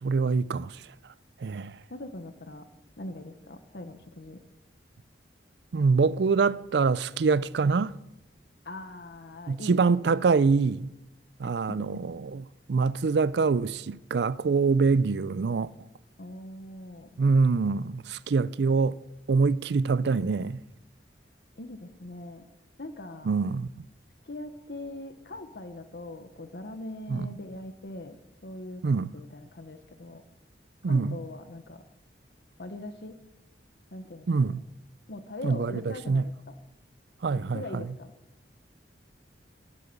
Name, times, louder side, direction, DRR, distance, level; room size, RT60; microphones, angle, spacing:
voice 1, 0.0-0.8 1.4-1.7 5.7-8.0 9.5-10.9 11.4-15.7 17.2-19.0 19.3-20.6 23.3-23.7 27.1-27.3 28.8-29.1 30.8-31.2 34.3-34.6 35.4-36.3 37.2-37.8, right 4 dB, 70° right, 0.4 m, -25 dB
voice 2, 1.9-2.7 3.0-4.4 8.6-9.8 11.7-12.0 16.2-17.2 21.6-22.5 22.8-23.3 24.2-28.2 28.4-30.2 30.9-31.8 32.6-33.2 33.9-34.5 35.1-36.5 37.5-38.1, left 2 dB, 60° left, 0.9 m, -41 dB
17.5 x 8.4 x 6.7 m
head